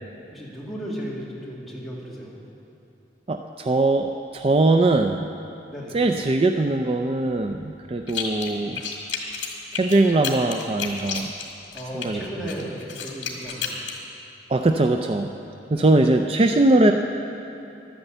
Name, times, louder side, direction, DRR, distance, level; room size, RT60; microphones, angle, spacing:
voice 1, 0.3-2.4 5.7-6.0 11.7-13.8 15.7-15.9, equal, ahead, -6 dB, 2.4 m, -35 dB
voice 2, 3.3-5.3 5.9-8.8 9.7-11.3 11.9-12.2 14.5-15.3 15.7-16.9, right 2 dB, 30° right, 5 dB, 0.4 m, -21 dB
sound 1, 8.1-8.5 8.7-12.1 12.5-14.0, left 7 dB, 75° left, 2.0 m, -31 dB
12.0 x 9.8 x 7.9 m, 2.9 s
head